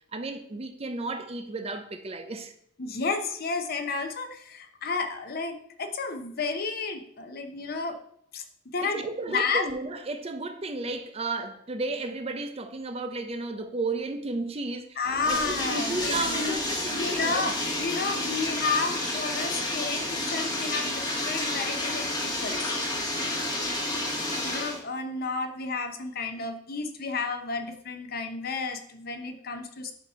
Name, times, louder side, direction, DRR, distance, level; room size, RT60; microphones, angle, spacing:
voice 1, 0.1-2.5 8.8-15.0 15.3-17.5, right 3 dB, 35° right, 0.6 m, -33 dB
voice 2, 2.8-8.0 8.3-9.6 15.0-16.6 16.9-22.8 24.4-29.9, left 4 dB, 55° left, 0.7 m, -32 dB
Bathtub (filling or washing), 15.0-24.8, left 1 dB, 20° left, 1.2 m, -30 dB
8.1 x 2.8 x 5.5 m
head